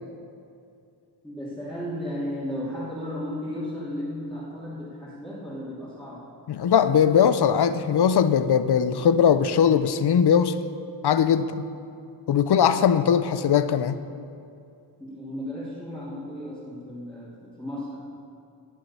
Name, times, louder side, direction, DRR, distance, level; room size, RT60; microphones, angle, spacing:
voice 1, 1.2-6.2 15.0-18.0, equal, ahead, -10 dB, 2.8 m, -34 dB
voice 2, 6.5-10.6 11.0-11.6 12.3-14.0, left 8 dB, 55° left, 12 dB, 0.7 m, -20 dB
18.0 x 7.5 x 5.6 m, 2.5 s
cardioid pair, 90°, 49 cm